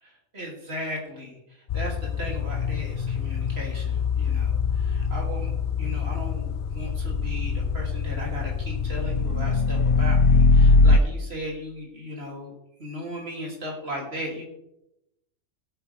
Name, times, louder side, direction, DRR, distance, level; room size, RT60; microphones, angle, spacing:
voice 1, 0.0-12.5 12.8-14.4, equal, 45° right, -2 dB, 3.3 m, -37 dB
sound 1, 1.7-11.0, left 4 dB, 80° left, 0.4 m, -23 dB
16.5 x 9.1 x 3.5 m, 0.86 s
omnidirectional pair, 1.4 m